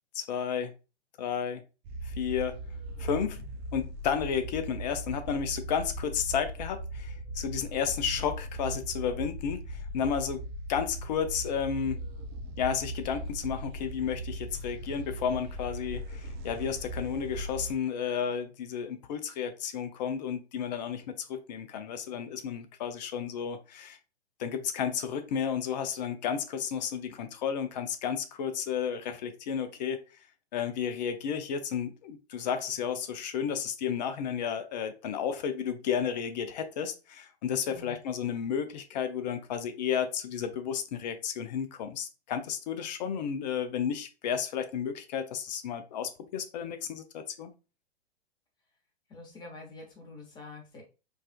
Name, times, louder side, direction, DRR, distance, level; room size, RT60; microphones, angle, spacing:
voice 1, 0.1-0.7 1.2-1.6 2.0-2.6 3.0-3.4 3.7-12.0 12.6-24.0 24.4-30.0 30.5-47.5, left 7 dB, 40° left, 9 dB, 0.6 m, -32 dB
sound 1, 1.8-17.8, right 1 dB, 25° right, 0.4 m, -39 dB
voice 2, 37.7-38.0 49.1-50.8, left 3 dB, 15° left, 1 dB, 1.0 m, -46 dB
4.8 x 2.4 x 2.3 m, 0.31 s
figure-of-eight pair, 110°, 32 cm